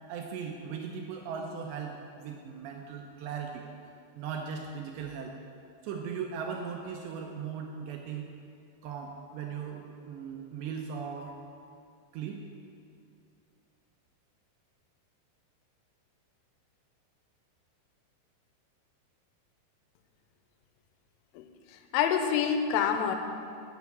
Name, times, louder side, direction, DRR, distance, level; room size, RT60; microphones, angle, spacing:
voice 1, 0.1-3.6 4.2-5.4 5.8-8.3 8.8-11.4 12.1-12.4, right 6 dB, 80° right, 2 dB, 2.6 m, -38 dB
voice 2, 21.4-23.2, left 8 dB, 85° left, 7 dB, 3.2 m, -27 dB
10.0 x 7.2 x 7.1 m, 2.4 s
omnidirectional pair, 5.6 m